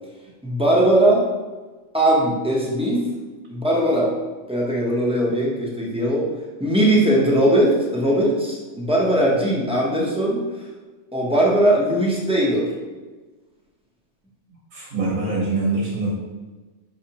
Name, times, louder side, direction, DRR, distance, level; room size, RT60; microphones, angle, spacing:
voice 1, 0.4-1.2 1.9-3.0 3.5-4.1 4.5-6.3 6.6-10.4 11.1-12.7, right 1 dB, 5° right, -4 dB, 0.5 m, -19 dB
voice 2, 14.7-16.1, right 3 dB, 70° right, -5 dB, 1.5 m, -24 dB
5.6 x 3.2 x 2.8 m, 1.3 s
omnidirectional pair, 1.4 m